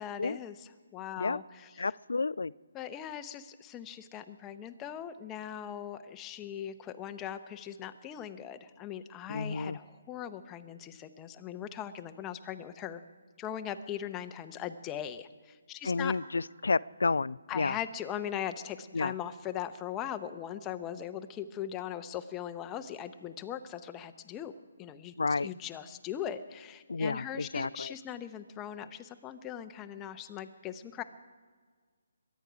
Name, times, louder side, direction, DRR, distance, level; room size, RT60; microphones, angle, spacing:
voice 1, 0.0-1.9 2.7-13.0 13.4-16.2 17.5-24.5 24.8-25.1 25.4-31.0, left 10 dB, 15° left, 9 dB, 0.7 m, -40 dB
voice 2, 1.8-2.5 9.3-9.8 15.8-17.8 18.9-19.1 25.2-25.5 26.9-27.9, left 4 dB, 75° left, 20 dB, 0.3 m, -31 dB
22.5 x 9.3 x 5.0 m, 1.5 s
figure-of-eight pair, 150°, 0 cm